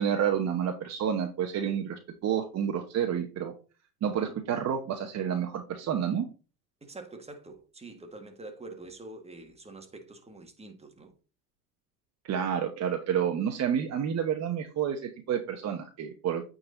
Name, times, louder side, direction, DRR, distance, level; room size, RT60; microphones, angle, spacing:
voice 1, 0.0-3.5 4.0-6.3 12.3-16.4, right 8 dB, 35° right, 1.0 m, -29 dB
voice 2, 6.8-11.1, right 2 dB, 15° right, 1.7 m, -46 dB
8.7 x 4.2 x 3.9 m
hypercardioid pair, 85°, 48 cm